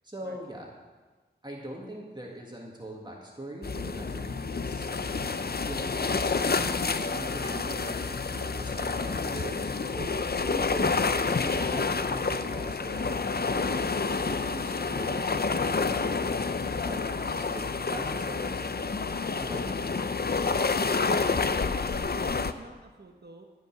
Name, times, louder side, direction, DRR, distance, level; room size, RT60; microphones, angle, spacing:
voice 1, 0.0-0.7 1.4-6.5 6.8-10.1 10.5-11.0 11.4-16.3 16.8-17.0 17.3-19.1 19.4-19.8, right 1 dB, 25° right, -2 dB, 1.9 m, -42 dB
sound 1, 3.6-22.5, left 4 dB, 60° left, 0.6 m, -29 dB
sound 2, 7.4-9.8 10.1-13.0, equal, 30° left, 4.0 m, -48 dB
voice 2, 21.4-23.5, right 2 dB, 65° right, 3 dB, 1.1 m, -50 dB
14.5 x 5.4 x 7.7 m, 1.3 s
wide cardioid pair, 50°, 18 cm